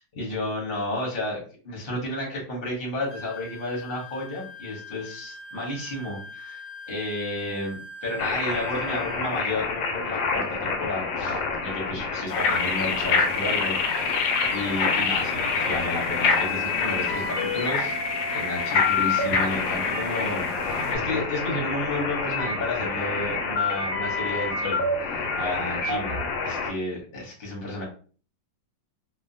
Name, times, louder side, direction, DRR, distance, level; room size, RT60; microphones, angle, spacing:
voice 1, 0.1-18.0 18.3-26.2 26.4-27.8, left 1 dB, 40° left, -2 dB, 0.8 m, -32 dB
Wind instrument woodwind instrument, 3.1-9.3, left 1 dB, 65° right, 0.6 m, -42 dB
sound 1, 8.2-26.7, left 4 dB, 90° left, 1.3 m, -29 dB
sound 2, 12.3-21.0, left 4 dB, 70° left, 1.0 m, -27 dB
3.1 x 2.1 x 2.6 m, 0.40 s
omnidirectional pair, 2.0 m